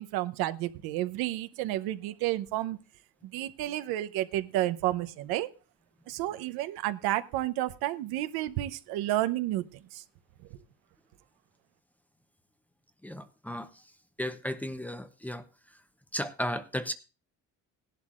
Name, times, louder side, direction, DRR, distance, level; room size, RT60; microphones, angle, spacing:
voice 1, 0.0-2.8 3.2-5.5 6.1-10.0, right 15 dB, 85° right, 12 dB, 0.8 m, -31 dB
voice 2, 13.0-13.7 14.2-15.4 16.1-16.9, equal, 5° left, 10 dB, 0.7 m, -34 dB
17.0 x 11.5 x 2.5 m, 0.33 s
cardioid pair, 130°, 36 cm